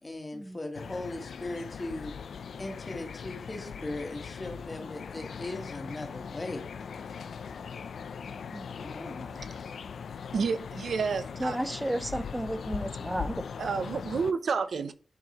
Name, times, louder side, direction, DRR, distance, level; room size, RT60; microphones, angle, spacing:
voice 1, 0.0-2.1 2.6-6.6 8.7-9.5, left 2 dB, 20° left, 1.5 m, -38 dB
sound 1, 0.7-14.3, left 6 dB, 75° left, 0.5 m, -40 dB
voice 2, 10.3-11.6 13.6-14.9, right 5 dB, 65° right, 0.6 m, -30 dB
voice 3, 11.4-13.4, right 1 dB, 5° right, 0.5 m, -33 dB
10.5 x 4.6 x 2.9 m
wide cardioid pair, 155°, 0 cm